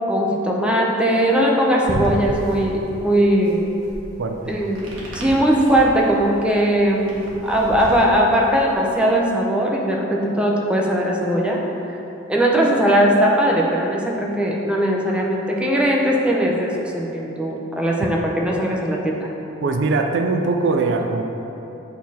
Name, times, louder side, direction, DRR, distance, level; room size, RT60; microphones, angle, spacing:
voice 1, 0.1-3.6 4.5-11.6 12.3-19.3, right 1 dB, 5° right, -2 dB, 0.6 m, -19 dB
sound 1, 1.8-8.9, equal, 80° right, 1.5 m, -33 dB
voice 2, 4.2-4.5 19.6-21.3, right 3 dB, 65° right, 4 dB, 0.4 m, -21 dB
8.2 x 4.1 x 4.2 m, 3.0 s
head